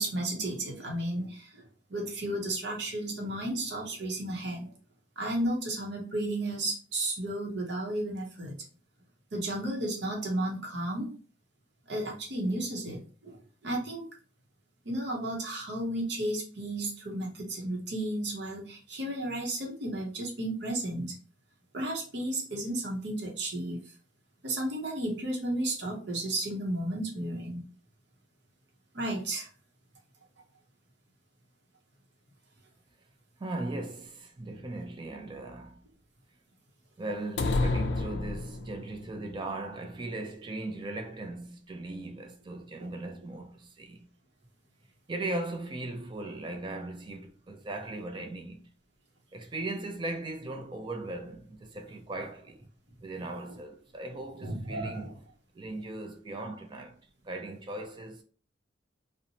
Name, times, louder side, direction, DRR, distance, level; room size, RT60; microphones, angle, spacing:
voice 1, 0.0-1.6 1.9-4.7 5.2-8.6 9.3-11.1 11.9-14.0 14.8-21.1 21.7-23.8 24.4-27.7 28.9-29.5 42.8-42.9 54.4-55.1, right 1 dB, 70° right, 0.8 m, -33 dB
voice 2, 33.4-35.9 37.0-44.1 45.1-48.6 49.3-52.7 53.0-55.2 55.5-58.2, right 2 dB, 25° right, 0.3 m, -38 dB
sound 1, 37.4-39.0, left 2 dB, 70° left, 0.3 m, -29 dB
2.7 x 2.1 x 2.7 m
head